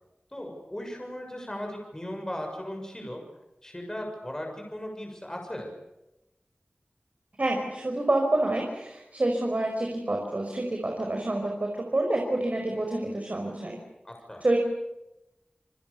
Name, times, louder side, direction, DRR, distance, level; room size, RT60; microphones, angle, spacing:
voice 1, 0.3-3.2 3.6-5.7 14.0-14.4, left 1 dB, 20° left, 2 dB, 6.9 m, -37 dB
voice 2, 7.4-13.8 14.4-14.6, right 1 dB, 50° right, 2 dB, 5.4 m, -28 dB
29.0 x 25.0 x 7.1 m, 0.93 s
wide cardioid pair, 60°, 3 cm